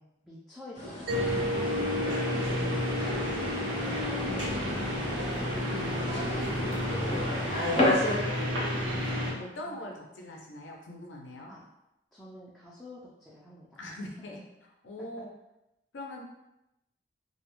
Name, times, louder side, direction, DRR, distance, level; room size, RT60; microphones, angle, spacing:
voice 1, 0.0-2.3 3.4-6.5 9.6-9.8 11.5-11.6 12.1-13.8, left 1 dB, ahead, -8 dB, 0.4 m, -49 dB
sound 1, 0.8-8.2, left 1 dB, 35° left, 0.6 m, -33 dB
Mallet percussion, 1.1-5.7, equal, 60° right, 0.4 m, -36 dB
sound 2, 1.1-9.3, left 1 dB, 85° right, 0.7 m, -31 dB
voice 2, 2.4-3.0 6.7-7.7 9.3-11.5 13.8-14.4 14.8-15.3 15.9-16.2, left 1 dB, 80° left, 0 dB, 0.5 m, -43 dB
2.4 x 2.1 x 2.9 m, 0.89 s
head